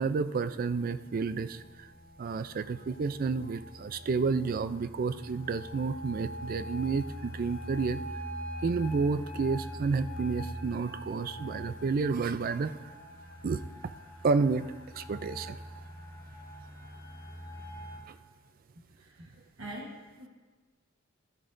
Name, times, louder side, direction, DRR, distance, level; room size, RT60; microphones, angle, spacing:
voice 1, 0.0-1.9 2.2-8.0 8.6-12.8 13.4-13.6 14.2-15.6 18.1-18.2, right 4 dB, 45° right, 13 dB, 0.3 m, -30 dB
sound 1, 0.9-18.0, equal, 10° left, 3.1 m, -43 dB
voice 2, 18.9-20.3, right 1 dB, 70° right, -2 dB, 1.2 m, -45 dB
13.0 x 12.5 x 2.6 m, 1.3 s
head